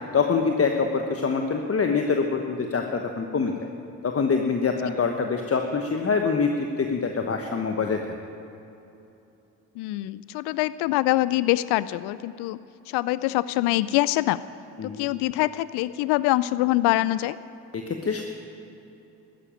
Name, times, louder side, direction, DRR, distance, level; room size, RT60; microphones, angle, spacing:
voice 1, 0.1-3.5 4.0-6.5 6.8-8.0 14.8-15.1 17.7-18.2, left 5 dB, 35° left, 4 dB, 1.2 m, -25 dB
voice 2, 9.8-12.6 12.9-14.4 14.8-17.3, left 17 dB, 70° left, 17 dB, 0.5 m, -24 dB
13.0 x 10.5 x 9.2 m, 2.9 s
hypercardioid pair, 50°, 43 cm